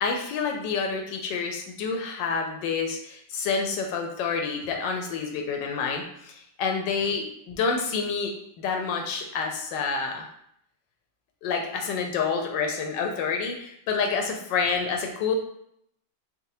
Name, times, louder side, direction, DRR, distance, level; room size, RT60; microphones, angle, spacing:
voice 1, 0.0-10.3 11.4-15.3, left 5 dB, 80° left, 3 dB, 1.2 m, -28 dB
4.0 x 2.0 x 2.6 m, 0.71 s
omnidirectional pair, 1.9 m